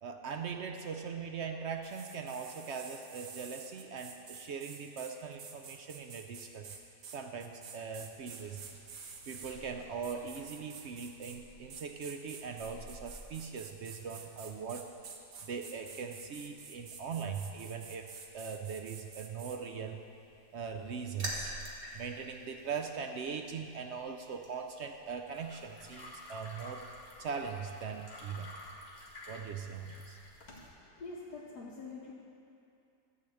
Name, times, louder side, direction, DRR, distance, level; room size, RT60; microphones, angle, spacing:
voice 1, 0.0-6.7 7.1-8.6 9.3-14.9 15.4-20.0 20.5-21.5 21.9-26.9 27.2-28.6 29.3-30.2, right 6 dB, 70° right, 4 dB, 0.6 m, -40 dB
sound 1, 1.8-9.6 10.0-11.4 11.7-19.6, right 6 dB, 90° right, 1.6 m, -50 dB
sound 2, 8.1-25.9, right 1 dB, 35° right, 1.8 m, -51 dB
sound 3, 25.3-30.7, left 1 dB, 25° left, 2.0 m, -50 dB
voice 2, 30.6-32.1, left 3 dB, 70° left, -6 dB, 1.7 m, -46 dB
14.0 x 5.0 x 8.3 m, 2.6 s
omnidirectional pair, 1.8 m